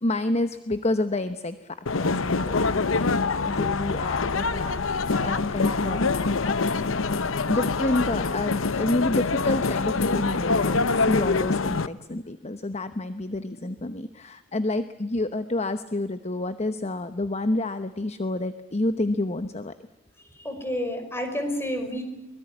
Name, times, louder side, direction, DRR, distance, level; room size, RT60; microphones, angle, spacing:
voice 1, 0.0-3.2 3.4-6.1 6.4-6.6 7.5-19.7, left 2 dB, 30° left, 10 dB, 1.0 m, -29 dB
sound 1, 1.9-11.9, left 4 dB, 70° left, 0.9 m, -25 dB
voice 2, 20.3-22.0, equal, 10° left, 6 dB, 5.4 m, -30 dB
24.0 x 21.0 x 9.8 m, 1.0 s
head